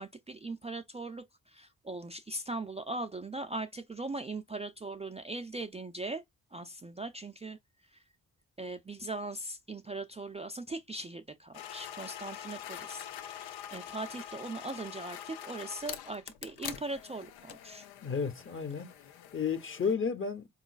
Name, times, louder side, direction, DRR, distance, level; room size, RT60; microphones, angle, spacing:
voice 1, 0.0-6.2 6.5-7.6 7.9-8.0 8.6-17.8, right 2 dB, 15° right, 0.4 m, -40 dB
sound 1, 11.5-19.9, left 10 dB, 80° left, 0.6 m, -45 dB
voice 2, 18.0-18.9 19.3-20.5, left 6 dB, 35° left, 0.8 m, -32 dB
3.7 x 3.0 x 2.3 m
supercardioid pair, 45°, 38 cm